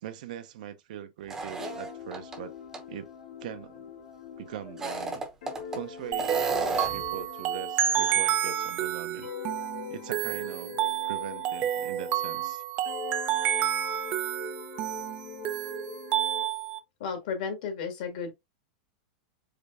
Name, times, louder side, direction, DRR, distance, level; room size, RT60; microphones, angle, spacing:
voice 1, 0.0-2.5 2.9-3.1 3.4-3.9 4.4-5.2 5.7-9.3 9.9-12.6, right 11 dB, 65° right, 0.7 m, -41 dB
sound 1, 1.3-2.4 2.7-2.8 4.7-5.8 6.2-7.1, right 3 dB, 10° right, 0.8 m, -32 dB
sound 2, 1.6-8.8 9.2-12.5 12.8-16.5, left 8 dB, 90° left, 1.9 m, -43 dB
sound 3, 6.1-16.8, right 11 dB, 30° right, 0.4 m, -30 dB
voice 2, 17.0-18.3, left 6 dB, 55° left, 1.7 m, -33 dB
5.0 x 3.3 x 2.5 m
supercardioid pair, 165°, 5 cm